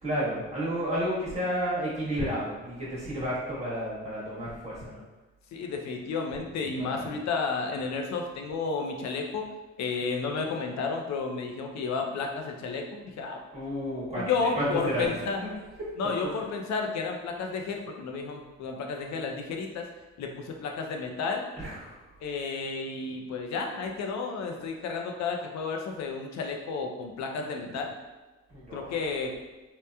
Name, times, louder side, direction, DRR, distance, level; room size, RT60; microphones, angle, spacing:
voice 1, 0.0-5.0 6.8-7.1 13.5-15.1 15.4-15.5 16.0-16.1 21.6-21.9 28.5-29.0, equal, 20° right, -8 dB, 1.2 m, -31 dB
voice 2, 5.5-9.5 9.8-13.4 14.2-15.6 16.0-19.8 20.2-21.5 22.2-27.9 28.7-29.3, left 4 dB, 65° left, 3 dB, 0.5 m, -32 dB
2.9 x 2.1 x 2.2 m, 1.1 s
cardioid pair, 90°, 30 cm